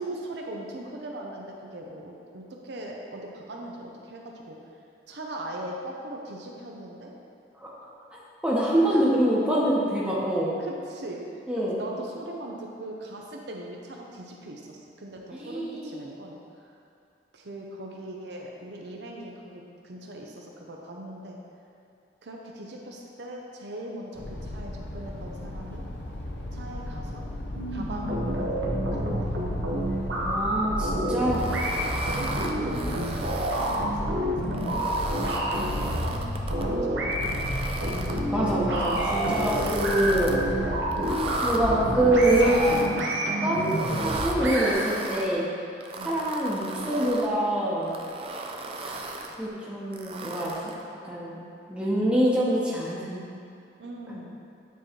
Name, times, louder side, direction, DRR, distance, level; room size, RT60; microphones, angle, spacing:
voice 1, 0.0-4.6 5.1-7.1 8.9-9.1 10.6-16.7 17.3-21.4 22.2-25.8 26.5-27.2 27.7-29.3 31.9-35.4 35.8-36.2 36.6-37.8 46.0-46.1 53.8-54.4, right 1 dB, 70° right, -1 dB, 0.6 m, -40 dB
voice 2, 8.4-10.5 11.5-11.8 15.3-16.0 30.2-31.5 38.3-40.8 41.0-42.8 43.4-43.7 44.0-45.4 46.0-47.9 48.8-49.1 49.4-50.7 51.0-51.4 51.7-53.3 54.1-54.2, right 1 dB, 5° right, -7 dB, 0.9 m, -25 dB
sound 1, 24.2-42.7, left 1 dB, 70° left, 0.7 m, -36 dB
sound 2, 27.5-44.7, right 1 dB, 85° right, 1.0 m, -29 dB
sound 3, 31.3-33.8 34.4-36.6 37.1-38.2 38.7-40.4 40.9-41.6 42.2-43.1 43.6-45.3 45.8-47.3 47.8-49.4 49.9-50.8, right 3 dB, 30° right, 0.4 m, -36 dB
9.0 x 3.1 x 4.4 m, 2.5 s
head